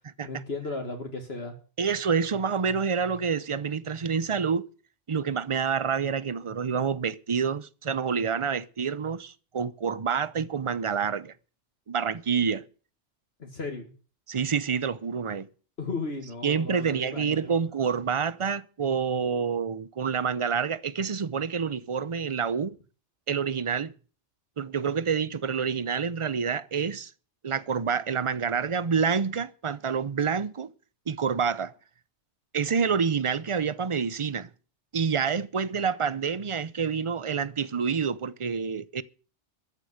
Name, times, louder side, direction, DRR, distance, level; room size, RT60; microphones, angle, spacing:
voice 1, 0.2-1.5 13.4-13.9 15.8-17.5, left 3 dB, 60° left, 2.0 m, -35 dB
voice 2, 1.8-4.6 5.1-11.3 11.9-12.6 14.3-15.5 16.4-22.8 23.3-23.9 24.6-27.1 27.4-30.7 31.1-31.7 32.5-34.5 34.9-39.0, right 6 dB, 35° right, 0.6 m, -28 dB
13.5 x 8.4 x 7.9 m
omnidirectional pair, 1.2 m